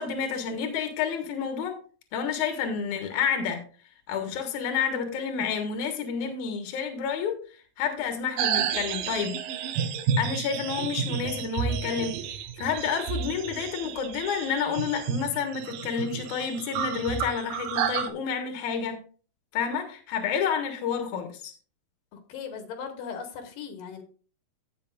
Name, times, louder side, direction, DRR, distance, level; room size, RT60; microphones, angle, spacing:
voice 1, 0.0-1.8 2.1-3.6 4.1-7.4 7.8-9.4 10.2-19.0 19.5-21.5, left 6 dB, 65° left, 2.8 m, -29 dB
sound 1, 8.4-18.1, right 7 dB, 85° right, 2.7 m, -31 dB
voice 2, 22.1-24.0, left 6 dB, 85° left, 3.2 m, -38 dB
16.0 x 6.6 x 2.5 m
omnidirectional pair, 3.9 m